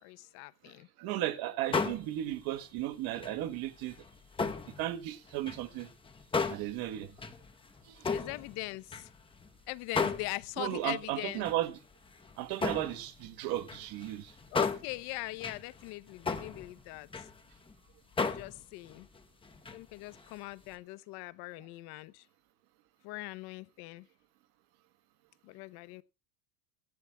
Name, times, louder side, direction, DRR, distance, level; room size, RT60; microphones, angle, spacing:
voice 1, 0.0-0.9 8.1-9.1 9.7-11.5 14.5-17.3 18.2-19.1 19.7-22.2 23.0-24.1 25.4-26.0, left 21 dB, 60° left, 0.7 m, -41 dB
voice 2, 1.0-3.9 4.4-4.5 4.8-5.9 6.5-7.1 7.9-8.0 10.6-11.8 12.4-14.3, right 13 dB, 55° right, 1.2 m, -35 dB
sound 1, 1.7-2.8 3.1-5.0 5.3-9.5 9.9-10.8 11.3-17.7 18.2-19.8 20.1-20.4 20.7-20.8, left 4 dB, 10° left, 0.8 m, -35 dB
17.5 x 12.0 x 2.2 m
supercardioid pair, 130°, 43 cm